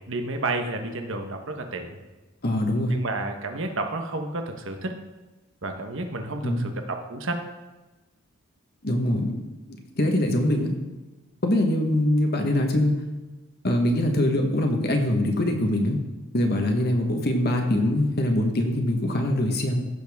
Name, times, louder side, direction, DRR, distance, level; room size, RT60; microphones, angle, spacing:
voice 1, 0.1-2.0 2.9-4.9 5.6-7.4, right 2 dB, 60° right, 5 dB, 1.1 m, -31 dB
voice 2, 2.4-3.0 6.4-6.7 8.8-9.4 9.7-10.8 11.4-13.0 13.6-16.0 16.3-19.8, left 1 dB, 45° left, 3 dB, 1.2 m, -23 dB
16.0 x 7.0 x 3.6 m, 1.1 s
head